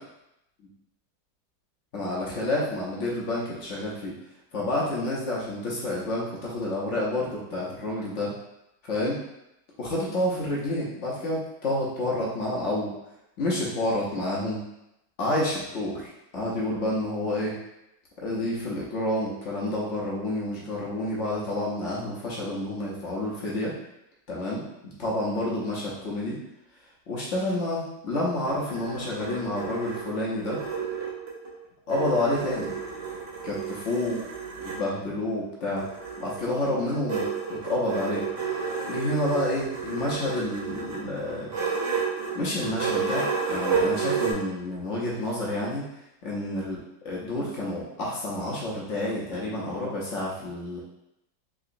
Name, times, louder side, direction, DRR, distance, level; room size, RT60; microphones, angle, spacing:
voice 1, 1.9-4.1 4.5-8.3 8.9-9.2 9.8-12.9 13.4-14.6 15.2-17.5 18.2-23.7 24.3-26.4 27.1-30.6 31.9-32.7 33.4-33.6 33.8-34.2 34.7-35.8 36.2-37.2 37.5-38.2 38.9-41.5 42.3-45.9 46.2-46.8 47.0-50.8, left 1 dB, 60° left, -5 dB, 0.8 m, -29 dB
sound 1, 28.2-31.5 31.9-34.8 35.8-44.3, right 5 dB, 85° right, 1.7 m, -31 dB
3.7 x 2.9 x 2.5 m, 0.87 s
omnidirectional pair, 2.0 m